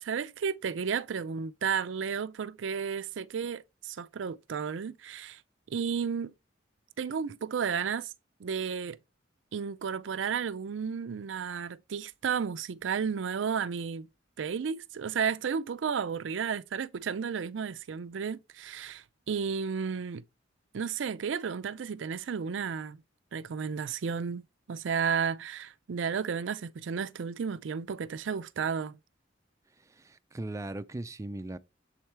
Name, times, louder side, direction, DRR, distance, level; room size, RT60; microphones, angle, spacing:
voice 1, 0.0-5.4 5.7-6.3 7.0-8.1 8.4-9.0 9.5-14.1 14.4-20.2 20.7-23.0 23.3-29.0, right 6 dB, 80° right, 0.4 m, -33 dB
voice 2, 29.7-31.6, right 2 dB, 15° right, 0.3 m, -39 dB
7.2 x 4.5 x 3.3 m
head